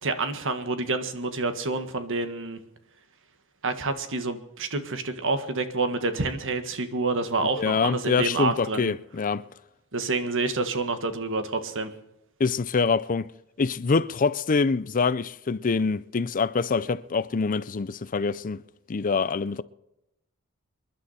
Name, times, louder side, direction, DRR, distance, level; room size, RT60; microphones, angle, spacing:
voice 1, 0.0-2.6 3.6-8.9 9.9-11.9, right 3 dB, 60° right, 1.7 m, -28 dB
voice 2, 7.6-9.4 12.4-13.3 13.6-18.6 18.9-19.6, left 4 dB, 40° left, 0.5 m, -25 dB
27.5 x 11.5 x 4.3 m
head